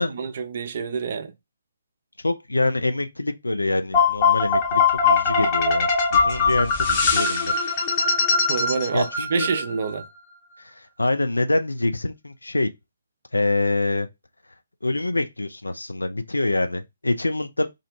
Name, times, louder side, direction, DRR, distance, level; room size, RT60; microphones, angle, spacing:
voice 1, 0.0-1.3 8.5-10.1, right 5 dB, 45° right, 0.3 m, -27 dB
voice 2, 2.2-7.6 8.9-9.5 10.6-12.7 13.3-14.1 14.8-17.7, left 2 dB, 75° left, 0.4 m, -25 dB
sound 1, 3.9-10.0, left 5 dB, 25° left, 0.7 m, -21 dB
2.5 x 2.1 x 2.5 m
figure-of-eight pair, 135°, 0 cm